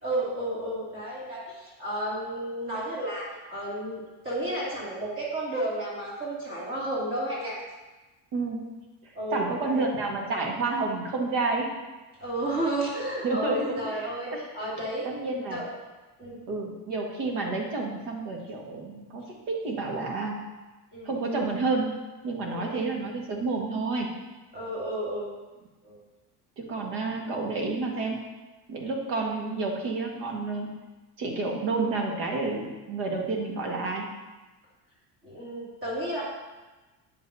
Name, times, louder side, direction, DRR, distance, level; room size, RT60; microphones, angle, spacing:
voice 1, 0.0-7.6 9.1-9.8 12.2-15.1 15.5-15.7 16.2-16.4 20.9-21.1 22.4-22.8 24.5-25.3 25.8-26.0 35.2-36.2, right 1 dB, 30° right, -7 dB, 2.8 m, -32 dB
voice 2, 8.3-8.6 9.3-11.8 13.2-13.8 14.3-14.4 15.0-15.6 16.5-20.4 21.0-21.9 22.2-24.1 26.6-28.2 28.7-30.7 31.2-34.1, right 3 dB, 70° right, 0 dB, 1.9 m, -30 dB
9.2 x 7.4 x 2.8 m, 1.2 s
cardioid pair, 135°, 42 cm